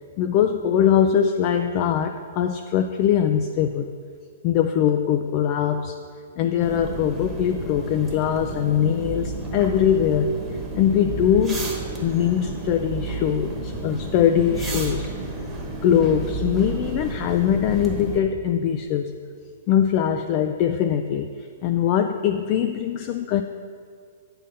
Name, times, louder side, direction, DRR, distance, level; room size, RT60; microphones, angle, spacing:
voice 1, 0.2-3.9 4.4-5.9 6.4-10.3 10.7-11.6 12.0-15.1 15.8-19.1 19.7-23.4, left 9 dB, 40° left, 6 dB, 0.3 m, -22 dB
sound 1, 6.6-18.2, right 2 dB, 10° right, 1.1 m, -32 dB
8.3 x 3.8 x 5.6 m, 2.1 s
hypercardioid pair, 130°, 0 cm